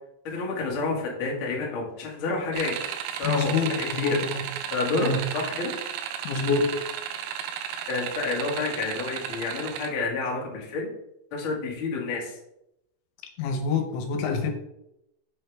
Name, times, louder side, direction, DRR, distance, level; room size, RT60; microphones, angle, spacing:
voice 1, 0.2-2.8 3.2-4.2 4.7-5.7 7.9-10.9 11.3-12.4, left 3 dB, 60° left, -2 dB, 1.3 m, -29 dB
sound 1, 2.5-9.9, right 9 dB, 85° right, 3.3 m, -34 dB
voice 2, 3.2-4.5 5.0-5.2 6.2-6.8 13.4-14.5, left 4 dB, 75° left, 5 dB, 3.1 m, -26 dB
7.8 x 7.3 x 3.5 m, 0.83 s
omnidirectional pair, 5.7 m